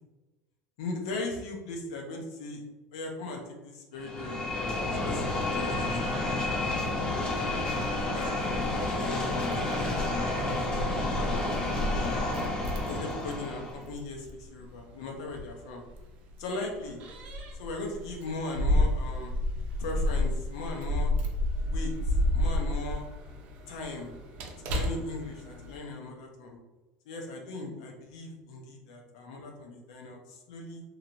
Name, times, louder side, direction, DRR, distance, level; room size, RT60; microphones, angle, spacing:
voice 1, 0.8-4.4 5.0-6.4 6.7-7.0 7.6-10.3 10.5-12.3 12.9-15.8 16.4-17.0 17.6-19.3 19.8-21.1 21.6-23.0 23.7-24.1 24.6-26.6 27.1-30.8, left 2 dB, 80° left, 1 dB, 0.7 m, -39 dB
sound 1, 4.0-13.8, left 2 dB, 25° left, 0.6 m, -30 dB
Keys jangling, 6.8-25.8, left 1 dB, 55° right, 0.6 m, -32 dB
2.9 x 2.8 x 2.6 m, 1.1 s
supercardioid pair, 115°, 3 cm